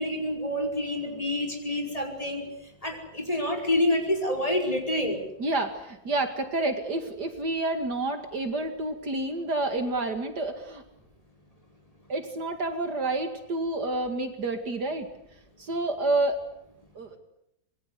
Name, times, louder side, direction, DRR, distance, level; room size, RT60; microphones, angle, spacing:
voice 1, 0.0-2.4 2.8-5.2, left 1 dB, 20° left, 3 dB, 5.3 m, -27 dB
voice 2, 5.4-10.8 12.1-15.1 15.6-16.4 16.9-17.2, right 2 dB, 60° right, 7 dB, 2.7 m, -29 dB
26.0 x 22.5 x 8.3 m, 0.78 s
omnidirectional pair, 2.0 m